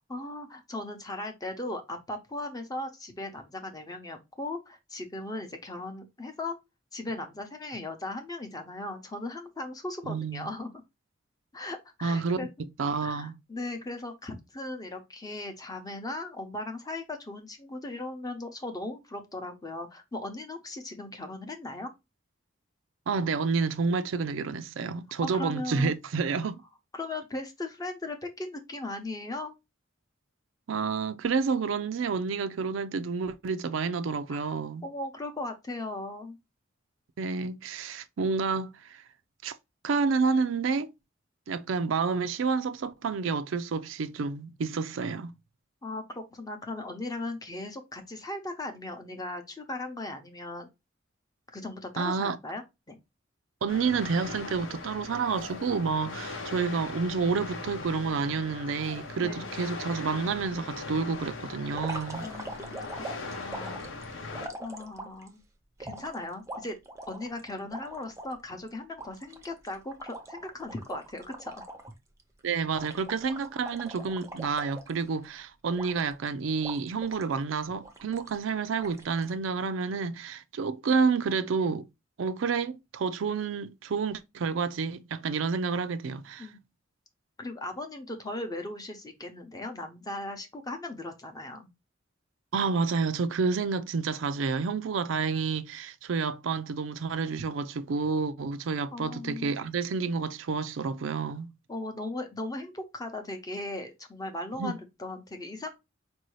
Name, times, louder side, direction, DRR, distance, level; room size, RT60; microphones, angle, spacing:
voice 1, 0.1-6.6 6.9-10.7 11.5-12.5 13.0-21.9 25.3-25.9 26.4-26.5 26.9-29.5 34.3-34.5 34.8-36.4 45.8-50.7 51.5-52.6 52.9-53.0 56.1-56.2 59.2-59.7 62.2-62.9 63.2-63.8 64.6-65.4 65.8-66.8 67.1-71.6 86.4-86.6 87.4-91.7 98.9-99.7 101.7-105.7, left 2 dB, 20° left, 0.7 m, -38 dB
voice 2, 10.0-10.5 12.0-12.5 12.8-13.3 23.1-26.6 30.7-34.8 37.2-39.0 39.4-39.5 39.8-40.9 41.5-45.3 52.0-52.4 53.6-62.2 72.4-81.8 82.2-86.5 92.5-101.5 104.6-104.7, right 5 dB, 90° right, 0.4 m, -29 dB
sound 1, 53.7-64.5, left 3 dB, 85° left, 0.9 m, -40 dB
sound 2, 61.7-65.3 65.8-68.3 68.7-68.8 69.0-71.9 72.2-72.4 72.8-75.3 75.8-76.3 76.6-77.3 77.8-78.4 78.8-79.3, right 1 dB, 15° right, 0.6 m, -42 dB
4.5 x 2.7 x 3.1 m
head